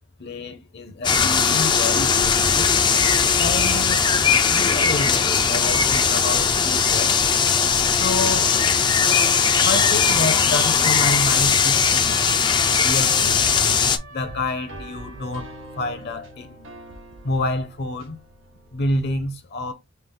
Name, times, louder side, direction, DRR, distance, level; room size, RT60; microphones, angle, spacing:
voice 1, 0.2-2.7 3.4-4.1 4.4-7.2 7.9-8.6 9.6-12.4 12.8-13.5 14.1-15.5 15.8-16.7 17.2-18.2 18.7-19.7, left 2 dB, 50° left, 0.7 m, -28 dB
sound 1, 1.0-14.0, left 6 dB, 20° left, 0.3 m, -19 dB
sound 2, 3.1-18.8, right 1 dB, 60° right, 0.9 m, -42 dB
sound 3, 8.2-15.9 16.6-16.7 16.9-17.4 17.8-17.9, right 4 dB, 75° right, 1.5 m, -42 dB
5.6 x 2.0 x 3.2 m
head